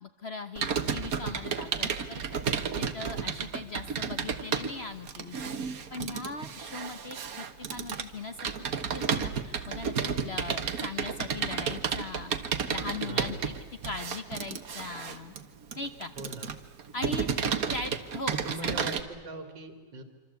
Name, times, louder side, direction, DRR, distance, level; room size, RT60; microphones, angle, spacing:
voice 1, 0.0-5.5 5.9-8.5 8.9-12.3 12.7-13.5 13.8-15.3 15.8-16.1 16.9-17.3 17.7-18.9, left 3 dB, 40° left, 8 dB, 1.1 m, -39 dB
Computer keyboard, 0.6-19.0, right 6 dB, 55° right, 1.6 m, -32 dB
voice 2, 13.0-13.4 16.2-16.5 17.7-17.8 18.4-20.0, right 2 dB, 75° right, 7 dB, 3.1 m, -41 dB
26.0 x 26.0 x 8.3 m, 1.3 s
omnidirectional pair, 2.0 m